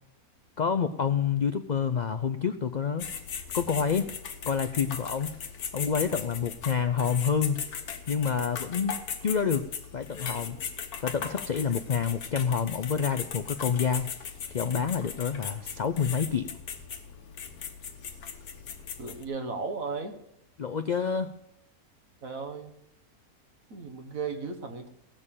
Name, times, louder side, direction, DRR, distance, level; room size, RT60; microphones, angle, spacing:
voice 1, 0.6-3.1 3.5-4.1 4.5-5.3 5.7-7.6 8.1-9.7 9.9-10.6 11.0-14.1 14.5-16.6 20.6-21.3, left 6 dB, 65° left, 10 dB, 0.4 m, -28 dB
sound 1, 3.0-19.2, left 7 dB, 85° left, 1.6 m, -38 dB
voice 2, 19.0-20.2 22.2-22.8 23.7-24.9, right 4 dB, 65° right, 5 dB, 1.9 m, -35 dB
16.5 x 6.7 x 8.8 m, 0.77 s
omnidirectional pair, 1.6 m